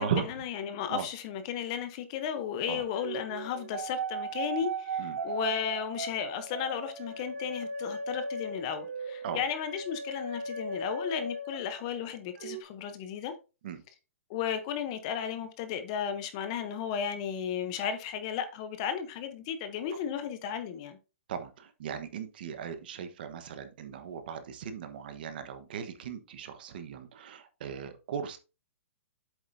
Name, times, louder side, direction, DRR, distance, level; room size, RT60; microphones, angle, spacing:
voice 1, 0.0-13.3 14.3-21.0, left 8 dB, 25° left, 0.8 m, -34 dB
sound 1, 2.9-12.1 12.4-12.6, right 3 dB, 65° right, 1.1 m, -37 dB
voice 2, 21.3-28.4, right 8 dB, 45° right, 1.2 m, -37 dB
8.1 x 7.2 x 2.7 m
hypercardioid pair, 175°, 7 cm